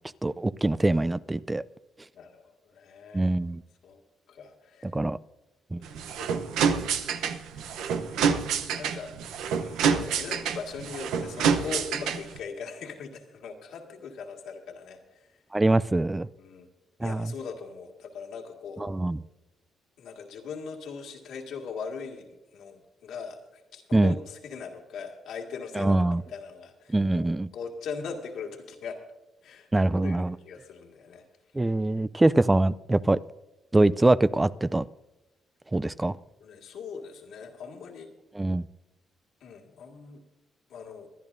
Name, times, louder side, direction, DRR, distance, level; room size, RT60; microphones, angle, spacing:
voice 1, 0.2-1.6 3.1-3.6 4.9-5.2 5.7-5.8 15.5-16.3 17.0-17.3 18.8-19.2 23.9-24.1 25.8-26.2 26.9-27.5 29.7-30.3 31.6-33.2 33.7-34.8 35.7-36.1 38.4-38.6, right 2 dB, 15° right, 0.3 m, -23 dB
voice 2, 2.1-3.4 3.8-4.0 4.3-5.0 5.8-6.6 7.6-8.3 8.7-9.1 9.6-15.4 16.4-16.7 17.0-18.9 20.0-29.0 29.4-29.7 29.9-31.2 36.4-38.1 39.4-40.2 40.7-41.1, left 5 dB, 80° left, 1.9 m, -40 dB
sound 1, 5.8-12.4, right 6 dB, 85° right, 0.8 m, -27 dB
25.0 x 10.5 x 2.7 m
cardioid pair, 90°, 0 cm